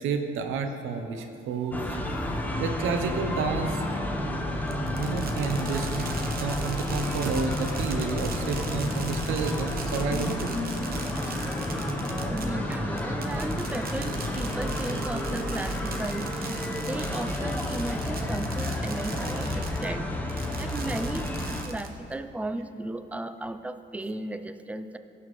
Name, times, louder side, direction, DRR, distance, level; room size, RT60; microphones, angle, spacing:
voice 1, 0.0-2.0 2.6-3.8 4.8-10.6, right 5 dB, 85° right, 6 dB, 0.8 m, -30 dB
sound 1, 1.7-21.6, left 1 dB, 10° left, 0.9 m, -30 dB
Fireworks, 4.7-19.9 20.3-22.1, right 5 dB, 50° right, 0.9 m, -41 dB
Explosion, 8.8-12.8, left 4 dB, 70° left, 0.9 m, -48 dB
voice 2, 11.3-11.9 12.2-16.6 16.9-21.3 21.6-25.0, right 2 dB, 5° right, 10 dB, 0.4 m, -36 dB
16.5 x 5.8 x 3.2 m, 2.7 s
cardioid pair, 90°, 20 cm